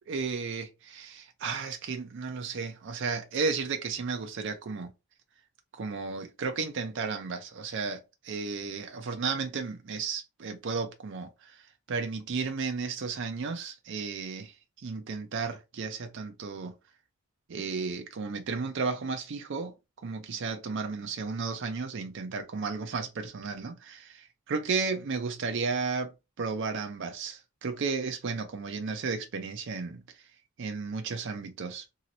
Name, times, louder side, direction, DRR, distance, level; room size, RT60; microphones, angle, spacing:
voice 1, 0.1-4.9 5.7-8.0 8.2-11.6 11.9-14.5 14.8-16.7 17.5-19.7 20.0-30.0 30.6-31.8, right 4 dB, 55° right, 0.4 m, -33 dB
2.9 x 2.8 x 2.7 m
head